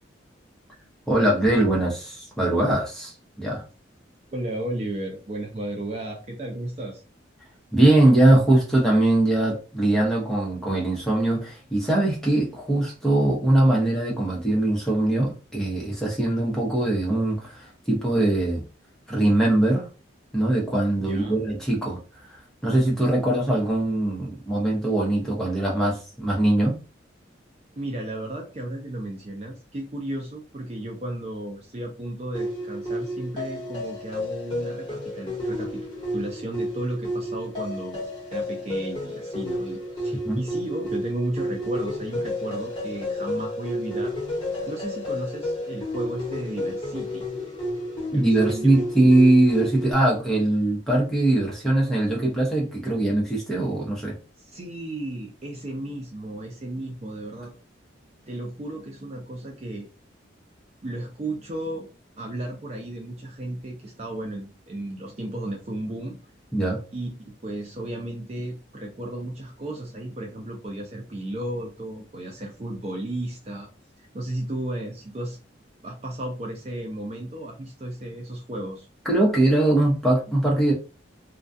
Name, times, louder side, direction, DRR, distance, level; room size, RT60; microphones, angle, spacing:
voice 1, 1.1-3.1 3.4-3.6 7.7-18.6 19.1-19.9 20.3-22.0 22.3-26.8 40.2-40.4 48.1-54.1 66.5-66.8 79.0-80.7, right 1 dB, ahead, 0.7 m, -21 dB
voice 2, 4.3-7.0 21.0-21.4 27.8-35.8 36.1-38.0 38.3-44.1 44.7-47.3 48.1-48.7 54.4-57.5 58.3-59.9 60.8-61.9 62.2-66.2 66.9-67.1 67.4-73.7 74.1-75.4 75.8-78.9, right 1 dB, 35° right, 0.4 m, -34 dB
sound 1, 32.3-49.9, left 1 dB, 25° left, 1.0 m, -31 dB
2.3 x 2.3 x 2.5 m
head